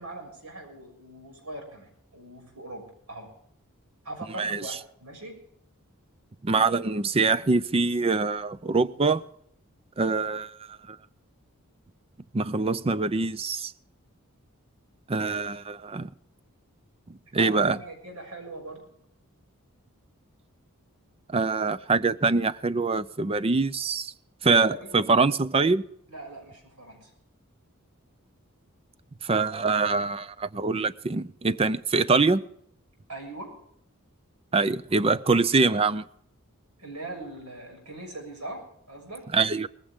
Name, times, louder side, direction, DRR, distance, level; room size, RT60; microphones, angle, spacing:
voice 1, 0.0-3.3 4.0-5.4 17.4-18.8 24.4-25.0 26.1-27.1 33.1-33.5 36.8-39.3, right 2 dB, 90° right, 6.5 m, -41 dB
voice 2, 6.4-9.2 10.0-11.0 12.3-13.7 15.1-16.1 17.3-17.8 21.3-24.1 24.4-25.8 29.2-32.4 34.5-36.0 39.3-39.7, right 4 dB, 25° right, 0.5 m, -24 dB
19.0 x 15.5 x 3.6 m
head